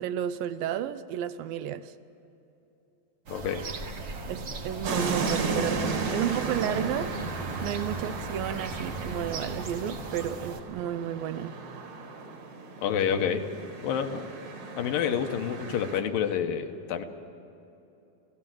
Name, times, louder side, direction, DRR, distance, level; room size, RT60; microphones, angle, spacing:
voice 1, 0.0-1.9 4.3-7.1 7.6-11.5, right 10 dB, 80° right, 12 dB, 2.4 m, -32 dB
voice 2, 3.3-3.7 12.8-13.5 13.8-14.3 14.7-17.0, left 8 dB, 75° left, 6 dB, 2.7 m, -28 dB
sound 1, 3.3-10.6, right 3 dB, 45° right, 1.6 m, -37 dB
sound 2, 4.8-16.0, right 3 dB, 65° right, 3.7 m, -35 dB
28.0 x 16.5 x 7.7 m, 2.9 s
omnidirectional pair, 4.3 m